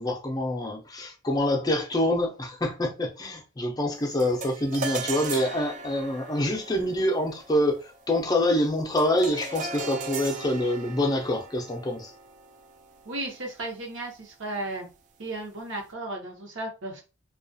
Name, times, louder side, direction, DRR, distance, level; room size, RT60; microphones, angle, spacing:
voice 1, 0.0-7.8 8.1-12.1, left 1 dB, 20° left, 0.5 m, -26 dB
sound 1, 4.2-13.7, right 4 dB, 40° right, 0.3 m, -38 dB
voice 2, 13.1-14.9 15.2-17.0, right 2 dB, 65° right, 0.9 m, -34 dB
2.3 x 2.3 x 2.6 m
head